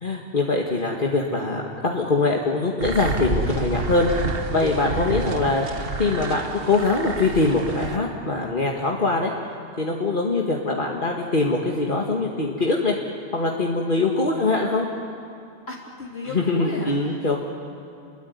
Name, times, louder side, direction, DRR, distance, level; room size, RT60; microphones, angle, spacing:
voice 1, 0.0-4.1 4.5-5.7 6.0-9.3 9.8-13.0 13.3-14.9 16.3-17.4, left 3 dB, 50° left, -1 dB, 2.1 m, -23 dB
sound 1, 2.8-8.0, right 3 dB, 60° right, 1.6 m, -29 dB
voice 2, 15.7-17.3, left 2 dB, 75° left, -3 dB, 3.4 m, -36 dB
29.0 x 21.0 x 9.6 m, 2.5 s
omnidirectional pair, 1.1 m